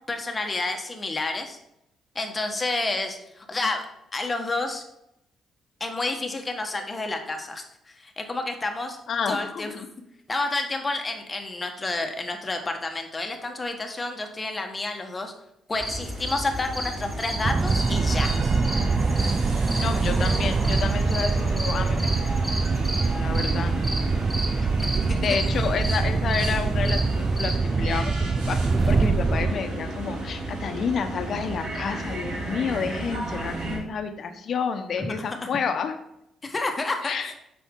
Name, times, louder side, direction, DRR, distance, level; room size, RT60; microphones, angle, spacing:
voice 1, 0.1-1.6 2.1-3.9 4.1-4.8 5.8-9.0 9.3-9.7 10.3-15.3 15.7-18.3 24.8-25.4 35.0-35.2 35.4-35.5 36.4-37.3, left 2 dB, 25° left, 4 dB, 1.4 m, -30 dB
voice 2, 9.1-9.9 19.8-22.1 23.2-23.8 25.1-35.9 37.0-37.3, left 6 dB, 60° left, 7 dB, 1.0 m, -30 dB
sound 1, 15.7-27.6, equal, 10° right, 1.8 m, -35 dB
sound 2, 15.8-33.8, right 1 dB, 85° right, 3.3 m, -33 dB
sound 3, 17.4-29.5, right 4 dB, 35° right, 0.3 m, -24 dB
8.2 x 6.2 x 3.8 m, 0.82 s
cardioid pair, 90°, 0 cm